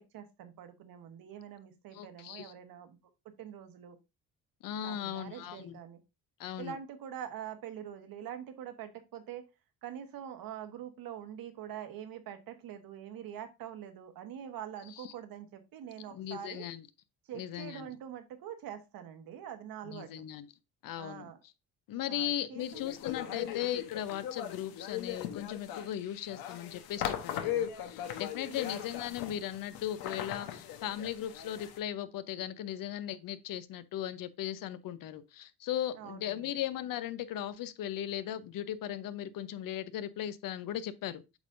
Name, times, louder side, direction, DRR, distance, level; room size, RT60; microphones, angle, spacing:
voice 1, 0.0-3.0 3.4-4.0 4.8-6.0 6.6-9.5 9.8-16.6 17.3-20.3 21.0-21.4 22.1-22.8 23.3-23.5 28.5-28.8 36.0-36.6, right 9 dB, 70° right, 1.3 m, -44 dB
voice 2, 1.9-2.5 4.6-5.8 6.4-6.8 14.9-15.1 16.1-16.9 17.3-17.9 19.9-20.5 20.8-21.3 21.9-41.4, left 11 dB, 65° left, 0.7 m, -38 dB
sound 1, 22.7-31.8, left 10 dB, 90° left, 1.1 m, -39 dB
8.1 x 5.3 x 2.6 m
cardioid pair, 125°, 36 cm